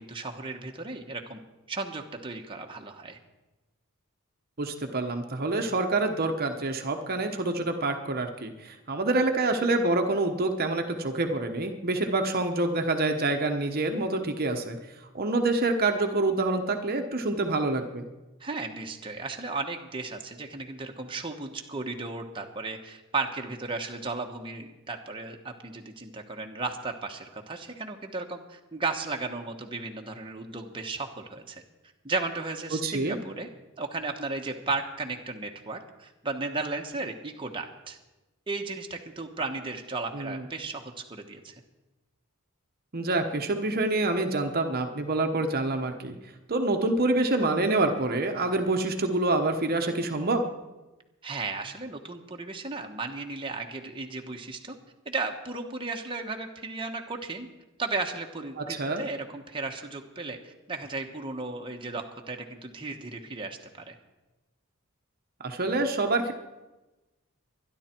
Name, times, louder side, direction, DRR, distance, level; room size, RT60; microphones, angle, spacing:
voice 1, 0.0-1.4 1.7-3.2 18.4-31.6 32.0-33.5 33.8-38.0 38.5-41.5 51.2-54.8 55.0-57.5 57.8-63.9, right 3 dB, 25° right, 2 dB, 1.2 m, -35 dB
voice 2, 4.6-14.8 15.1-18.0 32.7-33.2 40.1-40.4 42.9-46.1 46.5-50.4 58.6-59.0 65.4-66.3, right 2 dB, 45° right, 5 dB, 1.1 m, -27 dB
24.0 x 11.0 x 4.5 m, 1.1 s
head